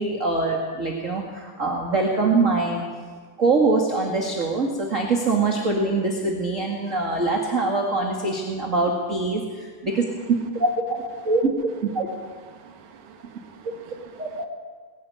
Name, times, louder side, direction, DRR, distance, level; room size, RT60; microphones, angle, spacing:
voice 1, 0.0-2.8 3.4-10.0 10.5-12.1 14.2-14.5, right 3 dB, 25° right, 1 dB, 2.0 m, -23 dB
voice 2, 12.5-14.5, right 6 dB, 65° right, 6 dB, 2.9 m, -48 dB
22.0 x 14.5 x 9.5 m, 1.5 s
omnidirectional pair, 4.0 m